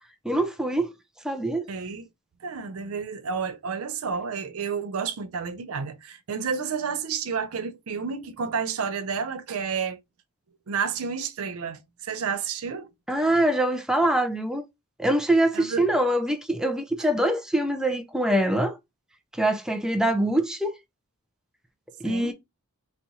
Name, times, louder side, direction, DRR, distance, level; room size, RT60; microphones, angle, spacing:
voice 1, 0.2-0.9 1.2-1.7 13.1-14.6 15.0-18.8 19.3-20.7 22.0-22.3, right 1 dB, 5° right, 0.4 m, -24 dB
voice 2, 1.7-2.0 2.4-10.0 10.7-12.9 15.5-15.9 22.0-22.3, right 6 dB, 75° right, 0.5 m, -30 dB
4.2 x 2.3 x 2.7 m
head